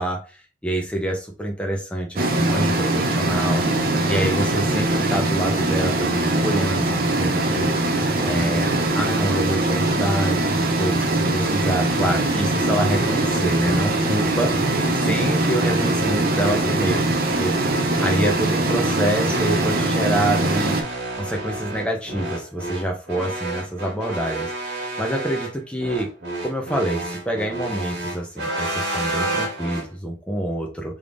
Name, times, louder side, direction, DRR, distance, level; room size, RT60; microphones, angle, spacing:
voice 1, 0.0-7.7 8.2-10.4 10.8-14.6 14.9-16.9 17.4-17.6 18.0-20.7 21.2-24.5 25.0-26.1 26.4-31.0, right 1 dB, 5° left, 1 dB, 0.7 m, -26 dB
Piano, 2.2-13.7, right 5 dB, 20° right, 1.3 m, -43 dB
sound 1, 2.2-20.8, right 2 dB, 55° right, 0.6 m, -22 dB
sound 2, 12.5-29.8, right 2 dB, 90° right, 1.5 m, -30 dB
3.5 x 3.2 x 2.5 m, 0.35 s
head